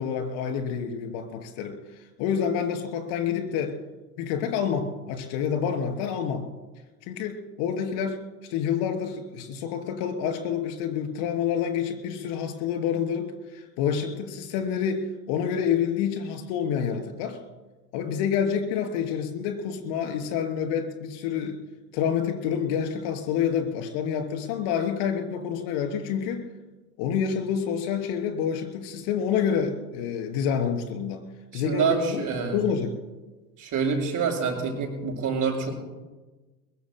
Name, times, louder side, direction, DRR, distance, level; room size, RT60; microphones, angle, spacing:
voice 1, 0.0-3.7 4.2-6.4 7.0-8.2 8.5-17.4 17.9-21.6 21.9-26.4 27.0-31.2 31.5-32.3 32.5-33.0, left 7 dB, 55° left, 5 dB, 3.3 m, -28 dB
voice 2, 31.5-32.6 33.6-35.7, right 5 dB, 40° right, 2 dB, 5.8 m, -26 dB
22.5 x 22.0 x 2.2 m, 1.2 s
figure-of-eight pair, 80°, 49 cm